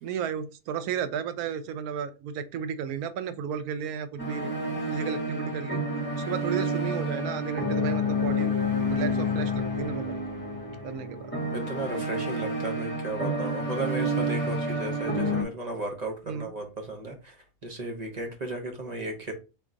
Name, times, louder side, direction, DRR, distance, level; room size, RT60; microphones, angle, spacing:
voice 1, 0.0-4.5 4.9-5.8 6.1-8.5 8.9-10.2 10.8-11.3 16.3-16.5, right 7 dB, 85° right, 1.1 m, -33 dB
sound 1, 4.2-15.4, left 1 dB, 10° left, 1.2 m, -29 dB
voice 2, 11.5-19.3, right 2 dB, 35° right, 0.8 m, -35 dB
3.5 x 2.9 x 3.8 m
omnidirectional pair, 1.5 m